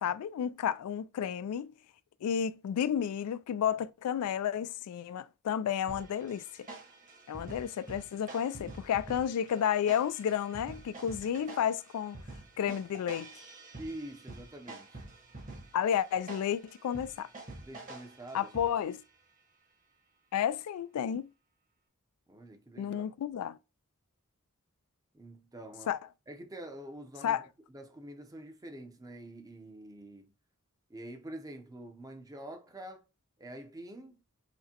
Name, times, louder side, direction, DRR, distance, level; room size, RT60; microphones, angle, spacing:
voice 1, 0.0-1.7 2.2-6.4 7.3-12.2 12.6-13.4 15.7-17.3 18.3-19.0 20.3-21.3 22.8-23.6 25.9-26.0 27.2-27.4, left 9 dB, 85° left, 0.3 m, -31 dB
sound 1, 5.9-19.0, right 2 dB, 35° right, 1.1 m, -48 dB
voice 2, 13.8-15.0 17.6-18.5 22.3-23.1 25.1-25.9 26.3-27.4 27.7-30.3 30.9-33.1 33.4-34.2, right 1 dB, 15° right, 0.6 m, -46 dB
5.8 x 2.1 x 2.8 m
head